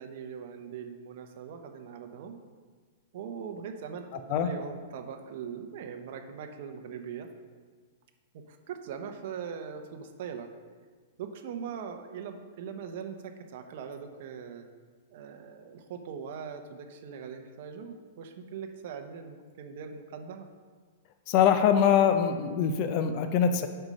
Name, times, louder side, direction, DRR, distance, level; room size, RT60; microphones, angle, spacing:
voice 1, 0.0-2.4 3.1-7.3 8.3-10.5 11.2-14.6 15.1-20.5, right 7 dB, 45° right, 5 dB, 0.8 m, -41 dB
voice 2, 21.3-23.7, left 8 dB, 30° left, 8 dB, 0.5 m, -23 dB
7.9 x 5.6 x 5.3 m, 1.5 s
supercardioid pair, 170°, 0 cm